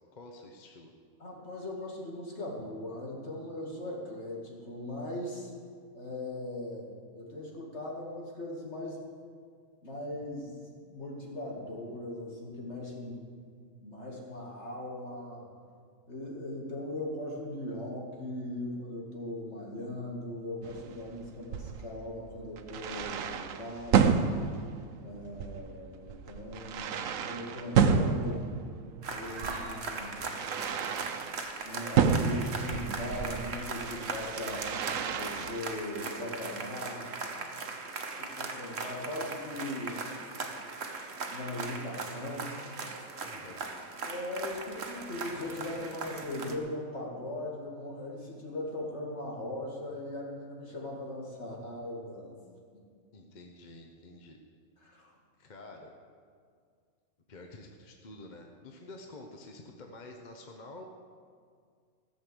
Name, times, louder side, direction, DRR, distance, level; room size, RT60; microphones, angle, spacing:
voice 1, 0.1-0.9 43.2-43.6 53.1-54.4 55.4-55.9 57.3-60.8, left 2 dB, 40° left, 3 dB, 0.9 m, -49 dB
voice 2, 1.2-5.5 5.9-9.0 9.8-13.3 13.8-15.5 16.1-24.2 25.0-28.5 29.1-30.3 31.6-34.6 35.1-37.1 38.1-40.0 41.3-42.6 44.0-52.4 54.8-55.1, left 1 dB, 55° left, -2 dB, 2.5 m, -39 dB
sound 1, 20.6-31.4 32.0-35.6, right 6 dB, 75° right, 1.1 m, -31 dB
sound 2, 29.0-46.6, right 3 dB, 55° right, 1.3 m, -39 dB
15.0 x 6.7 x 7.8 m, 2.1 s
omnidirectional pair, 1.4 m